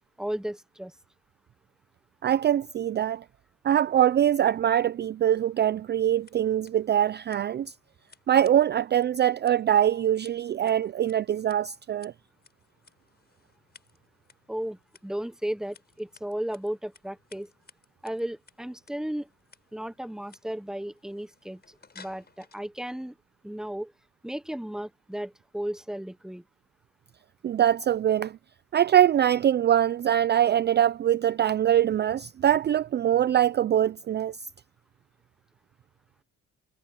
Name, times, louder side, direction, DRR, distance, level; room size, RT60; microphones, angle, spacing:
voice 1, 0.2-0.9 14.5-17.5 18.0-19.3 19.7-23.2 23.4-23.9 24.2-26.4, right 1 dB, ahead, 1.0 m, -34 dB
voice 2, 2.2-3.2 3.6-7.7 8.3-12.1 27.4-28.4 28.7-34.4, right 10 dB, 35° right, 0.4 m, -23 dB
Scissors, 6.1-22.6, left 5 dB, 35° left, 5.6 m, -59 dB
cardioid pair, 90°, 30 cm